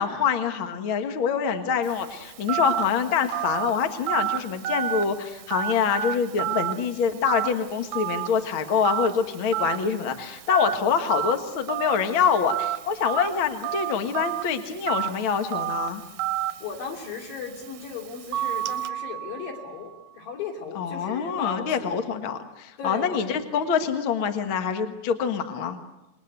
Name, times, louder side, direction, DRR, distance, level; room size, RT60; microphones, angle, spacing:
voice 1, 0.0-16.0 20.8-25.8, left 7 dB, 50° left, 7 dB, 1.7 m, -25 dB
Telephone, 1.8-18.9, right 12 dB, 70° right, 2.2 m, -32 dB
voice 2, 16.6-22.0 22.8-23.4, left 6 dB, 75° left, 2 dB, 4.7 m, -36 dB
Mallet percussion, 18.3-20.1, right 11 dB, 85° right, 2.8 m, -32 dB
27.5 x 21.0 x 8.1 m, 1.0 s
omnidirectional pair, 4.0 m